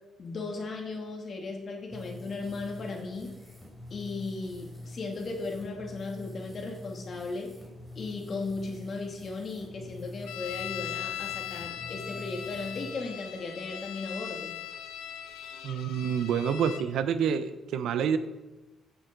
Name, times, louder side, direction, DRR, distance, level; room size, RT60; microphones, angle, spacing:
voice 1, 0.2-3.3 3.9-7.5 7.9-14.6, left 3 dB, 50° left, 1 dB, 2.6 m, -36 dB
sound 1, 1.9-12.9, left 1 dB, 5° right, 3.4 m, -46 dB
sound 2, 10.3-16.9, left 11 dB, 90° left, 0.8 m, -39 dB
voice 2, 15.6-18.2, right 7 dB, 80° right, 11 dB, 0.8 m, -28 dB
14.5 x 7.8 x 4.0 m, 1.1 s
cardioid pair, 90°, 0 cm